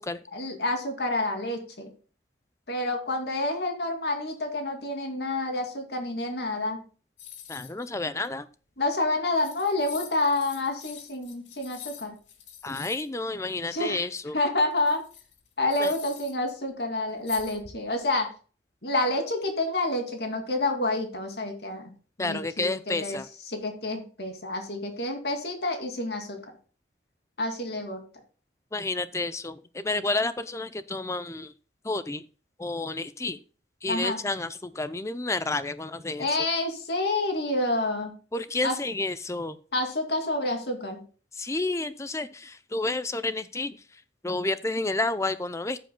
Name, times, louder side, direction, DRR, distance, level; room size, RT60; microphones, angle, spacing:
voice 1, 0.3-1.9 2.7-6.8 8.8-12.1 13.7-14.0 14.3-15.0 15.6-18.3 18.8-21.9 22.2-23.2 23.5-26.4 27.4-28.0 33.9-34.2 36.2-38.1 38.6-38.8 39.7-41.0, left 2 dB, 60° left, 4 dB, 2.5 m, -28 dB
sound 1, 7.2-7.9 8.2-8.3 9.1-9.2 9.3-13.1 14.6-16.5 17.3-18.0, left 10 dB, 85° left, 1.9 m, -45 dB
voice 2, 7.5-8.5 12.6-14.4 15.8-15.9 22.2-23.2 28.7-31.5 31.8-32.2 32.6-33.4 33.8-36.3 38.3-39.6 41.3-43.8 44.2-45.8, left 2 dB, 15° left, 13 dB, 0.5 m, -30 dB
14.0 x 7.8 x 2.2 m, 0.37 s
head